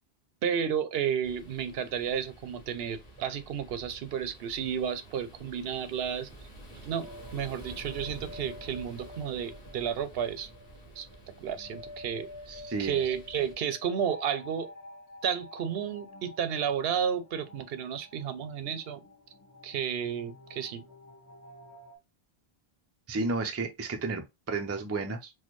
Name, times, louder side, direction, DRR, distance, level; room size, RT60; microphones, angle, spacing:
voice 1, 0.4-6.3 6.8-7.1 7.3-10.5 11.0-11.1 11.4-12.3 12.8-14.7 15.2-19.0 19.6-20.8, right 8 dB, 70° right, 0.8 m, -32 dB
sound 1, 1.2-13.5, right 2 dB, 40° left, 1.3 m, -50 dB
sound 2, 7.0-22.0, left 2 dB, 20° left, 0.9 m, -49 dB
voice 2, 12.5-13.0 23.1-25.3, right 3 dB, 25° right, 0.3 m, -32 dB
4.2 x 2.2 x 3.0 m
omnidirectional pair, 1.1 m